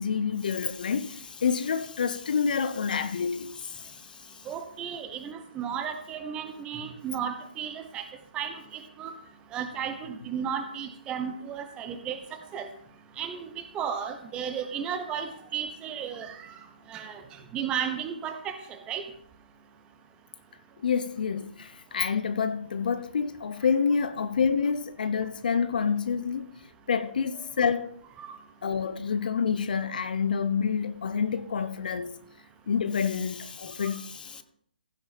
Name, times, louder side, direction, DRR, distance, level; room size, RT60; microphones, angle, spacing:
voice 1, 0.0-4.4 20.8-26.5 26.9-27.9 28.6-32.2 32.7-34.4, left 6 dB, 60° left, 0.8 m, -28 dB
voice 2, 4.5-8.0 8.3-9.1 9.5-12.7 13.2-16.5 16.9-17.2 17.5-19.0 28.2-28.4 33.8-33.9, right 8 dB, 15° right, 1.1 m, -34 dB
15.5 x 6.2 x 4.3 m
figure-of-eight pair, 140°, 5 cm